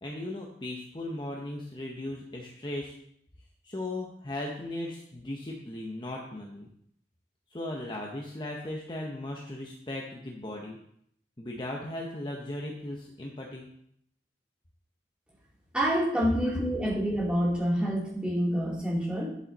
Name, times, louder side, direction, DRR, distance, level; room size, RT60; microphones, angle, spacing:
voice 1, 0.0-2.9 3.6-6.7 7.5-10.8 11.4-13.7, left 1 dB, 25° left, 0 dB, 0.8 m, -37 dB
voice 2, 15.7-19.3, equal, 5° right, -5 dB, 2.7 m, -27 dB
11.0 x 5.5 x 4.1 m, 0.71 s
head